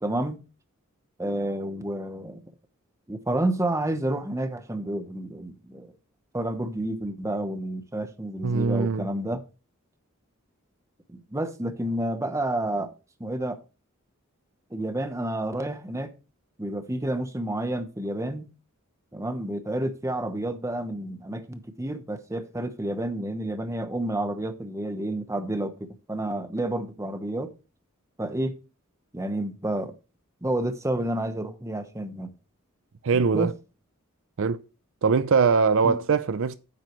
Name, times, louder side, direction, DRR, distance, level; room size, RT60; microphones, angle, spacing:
voice 1, 0.0-0.4 1.2-2.4 3.1-5.9 6.3-9.4 11.1-12.9 13.2-13.6 14.7-16.1 16.6-18.5 19.1-27.5 28.2-28.5 29.1-29.9 30.4-32.3 33.1-33.5 35.8-36.0, right 1 dB, 15° right, 0.9 m, -30 dB
voice 2, 8.4-9.1 33.0-33.5 34.4-34.6 35.0-36.6, right 5 dB, 65° right, 0.5 m, -22 dB
9.4 x 7.6 x 3.1 m
head